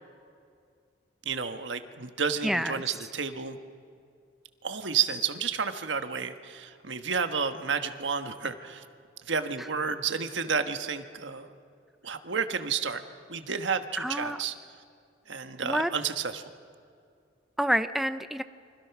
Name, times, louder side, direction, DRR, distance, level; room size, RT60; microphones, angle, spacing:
voice 1, 1.2-3.6 4.6-8.8 9.3-11.5 12.0-13.0 13.3-14.5 15.3-16.4, right 6 dB, 75° right, 8 dB, 1.4 m, -31 dB
voice 2, 2.4-2.8 9.6-9.7 14.0-14.4 15.6-15.9 17.6-18.4, equal, ahead, 10 dB, 0.5 m, -28 dB
29.5 x 25.0 x 6.0 m, 2.3 s
head